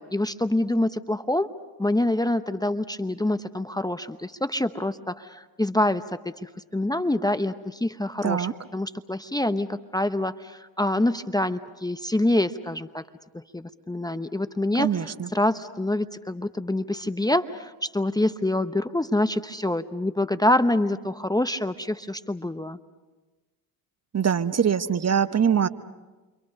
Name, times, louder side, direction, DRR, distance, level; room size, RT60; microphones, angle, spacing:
voice 1, 0.0-1.5 1.8-8.5 8.7-13.0 13.3-14.9 15.3-22.8, left 1 dB, 10° left, 10 dB, 0.9 m, -26 dB
voice 2, 14.7-15.3 24.1-25.7, right 7 dB, 35° right, 11 dB, 1.2 m, -23 dB
29.5 x 25.5 x 5.4 m, 1.2 s
hypercardioid pair, 60°, 46 cm